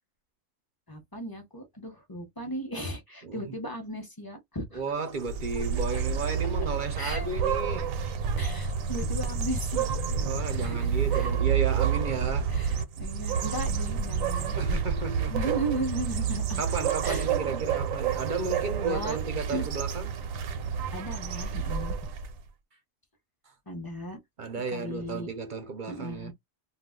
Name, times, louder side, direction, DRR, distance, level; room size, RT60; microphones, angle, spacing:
voice 1, 0.9-4.8 5.5-5.6 7.0-7.3 8.4-11.4 12.5-14.6 15.3-16.6 17.0-17.6 18.8-19.2 19.5-19.7 20.9-22.0 23.7-24.2 24.7-25.3 25.9-26.3, right 1 dB, 20° left, 0.7 m, -36 dB
voice 2, 3.2-3.6 4.7-7.9 10.1-12.6 14.3-15.5 16.6-20.2 24.4-26.3, right 4 dB, 50° right, 0.6 m, -33 dB
sound 1, 5.1-22.4, right 7 dB, 80° right, 1.0 m, -29 dB
2.3 x 2.3 x 3.5 m
omnidirectional pair, 1.4 m